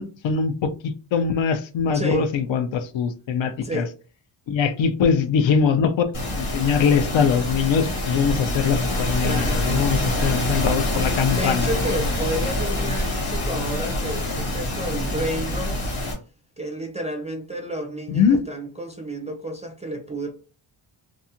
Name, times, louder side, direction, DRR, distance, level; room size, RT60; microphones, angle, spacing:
voice 1, 0.0-3.8 4.5-6.0 6.3-11.7 18.1-18.4, left 6 dB, 65° left, 0.5 m, -22 dB
voice 2, 1.9-2.3 3.6-3.9 9.2-9.6 11.3-15.9 16.6-20.3, right 1 dB, 15° right, 0.3 m, -31 dB
sound 1, 6.1-16.1, left 1 dB, 90° left, 1.3 m, -25 dB
2.6 x 2.3 x 2.7 m
wide cardioid pair, 145°, 49 cm